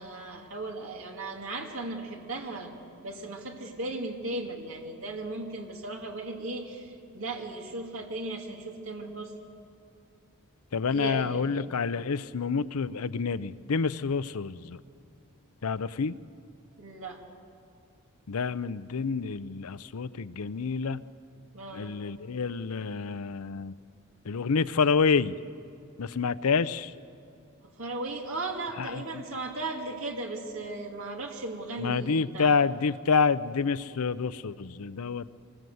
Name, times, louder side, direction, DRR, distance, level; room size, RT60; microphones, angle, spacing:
voice 1, 0.0-2.7 3.0-9.3 10.9-11.5 16.8-17.2 21.5-22.0 27.8-32.5, right 2 dB, 65° right, 1 dB, 2.3 m, -36 dB
voice 2, 10.7-14.8 15.6-16.2 18.3-21.0 21.7-23.7 24.3-25.3 26.0-26.9 28.8-29.2 31.8-35.3, left 5 dB, 80° left, 15 dB, 0.6 m, -28 dB
25.0 x 20.5 x 7.9 m, 2.5 s
head